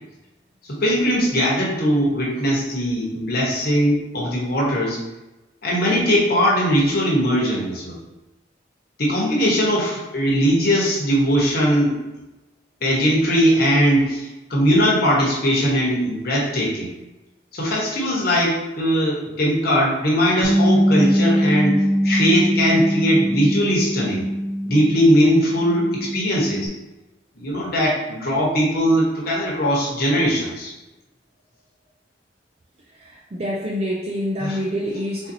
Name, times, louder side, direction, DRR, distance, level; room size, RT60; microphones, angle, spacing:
voice 1, 0.6-5.0 5.6-8.0 9.0-11.9 12.8-16.9 17.5-21.8 22.0-24.3 24.6-26.7 27.4-30.7 34.4-34.6, equal, 60° left, -4 dB, 1.1 m, -20 dB
Bass guitar, 20.4-25.1 25.5-26.7, equal, 30° left, 0.4 m, -21 dB
voice 2, 32.9-35.3, equal, 35° right, -3 dB, 0.4 m, -27 dB
4.0 x 2.7 x 2.7 m, 1.0 s
head